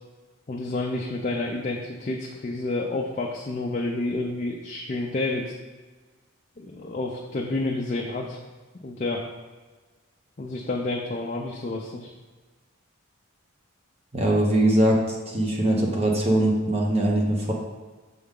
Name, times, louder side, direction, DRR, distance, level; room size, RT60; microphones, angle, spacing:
voice 1, 0.5-5.5 6.6-8.4 8.8-9.3 10.4-12.1, left 2 dB, 35° left, -1 dB, 0.5 m, -29 dB
voice 2, 14.1-17.5, right 1 dB, 30° right, -2 dB, 1.1 m, -22 dB
6.9 x 3.8 x 3.7 m, 1.3 s
head